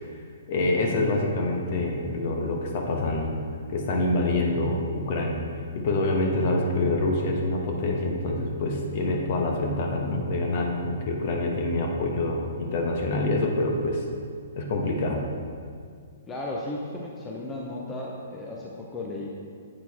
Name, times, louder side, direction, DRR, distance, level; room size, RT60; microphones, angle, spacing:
voice 1, 0.5-3.3 3.7-5.4 5.7-14.0 14.6-15.2, left 2 dB, 50° left, 1 dB, 1.1 m, -26 dB
voice 2, 16.3-19.3, left 2 dB, 15° left, -2 dB, 0.7 m, -35 dB
7.6 x 4.5 x 4.1 m, 2.1 s
hypercardioid pair, 140°, 0 cm